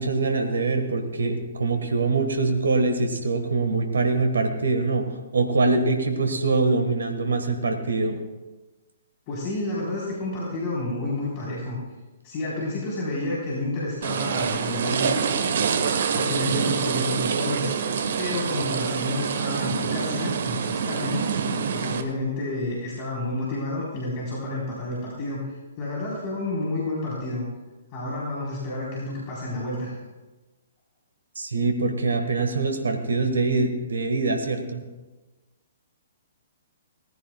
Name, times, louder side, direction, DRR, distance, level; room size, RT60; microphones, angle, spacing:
voice 1, 0.0-8.2 31.3-34.8, right 3 dB, 75° right, 6 dB, 1.5 m, -24 dB
voice 2, 9.3-11.8 12.2-15.1 16.1-17.7 18.2-21.2 21.7-27.5 27.9-29.9, left 2 dB, 35° left, -5 dB, 3.9 m, -30 dB
sound 1, 14.0-22.0, right 6 dB, 60° right, 1.1 m, -26 dB
18.5 x 15.0 x 2.3 m, 1.2 s
figure-of-eight pair, 125°, 0 cm